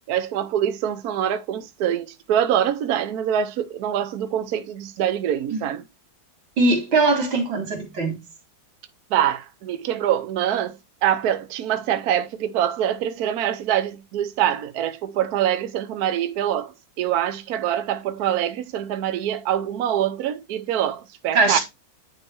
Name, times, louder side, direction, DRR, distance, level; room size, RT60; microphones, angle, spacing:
voice 1, 0.0-5.8 9.1-21.6, right 10 dB, 65° right, 1.1 m, -24 dB
voice 2, 6.6-8.2 21.3-21.6, right 3 dB, 85° right, 3.1 m, -20 dB
9.6 x 3.3 x 4.5 m
omnidirectional pair, 2.1 m